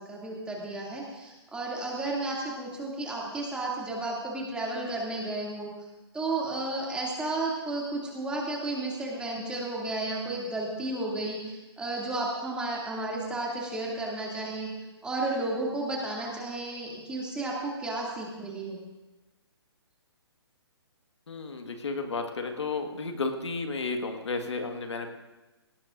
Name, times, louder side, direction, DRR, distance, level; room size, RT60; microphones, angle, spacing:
voice 1, 0.0-5.7 6.1-14.7 15.0-18.8, right 2 dB, 5° right, -3 dB, 2.5 m, -33 dB
voice 2, 21.3-25.1, left 3 dB, 85° left, 5 dB, 1.7 m, -32 dB
18.0 x 17.5 x 2.6 m, 1.1 s
hypercardioid pair, 145°, 14 cm